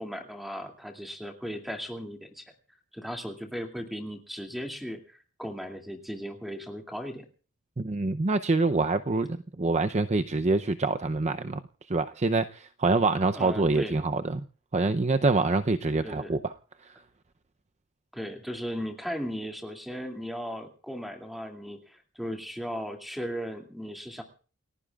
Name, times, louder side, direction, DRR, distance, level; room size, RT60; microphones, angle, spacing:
voice 1, 0.0-2.4 2.9-7.3 13.3-14.1 16.0-16.4 18.1-24.2, equal, ahead, 2.4 m, -37 dB
voice 2, 7.8-11.6 11.9-14.4 14.7-16.5 16.9-17.0, right 3 dB, 30° right, 0.6 m, -26 dB
29.0 x 15.0 x 2.4 m
head